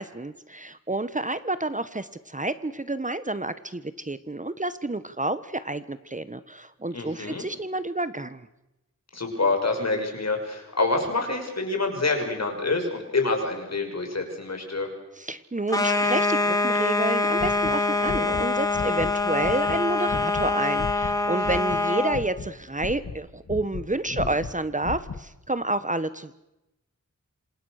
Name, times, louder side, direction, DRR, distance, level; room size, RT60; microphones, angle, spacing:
voice 1, 0.0-8.5 15.2-26.4, right 2 dB, 25° right, 13 dB, 1.3 m, -29 dB
voice 2, 6.9-7.4 9.1-14.9 24.2-24.3, left 3 dB, 60° left, 4 dB, 6.2 m, -27 dB
sound 1, 15.7-22.2, left 2 dB, 10° left, 3.7 m, -24 dB
sound 2, 17.3-18.5 18.7-19.1 19.4-21.8 22.1-23.9 24.2-25.2, left 5 dB, 75° left, 2.0 m, -35 dB
27.5 x 26.5 x 6.6 m, 0.94 s
wide cardioid pair, 90°, 30 cm